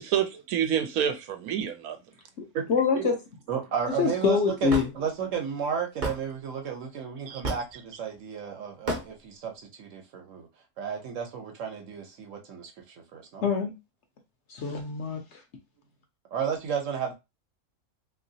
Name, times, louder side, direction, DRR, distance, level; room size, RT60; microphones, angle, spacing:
voice 1, 0.0-2.0 7.3-7.4, right 9 dB, 85° right, 1.1 m, -28 dB
voice 2, 2.7-3.1 4.0-4.9 13.4-13.7 14.5-15.4, left 6 dB, 60° left, 0.8 m, -25 dB
voice 3, 3.5-10.5 10.8-13.4 16.3-17.1, right 7 dB, 65° right, 1.1 m, -33 dB
Hammer / Wood, 4.7-4.9 6.0-6.2 7.4-7.7 8.9-9.1, right 2 dB, 40° right, 0.8 m, -29 dB
2.9 x 2.9 x 2.7 m
omnidirectional pair, 1.5 m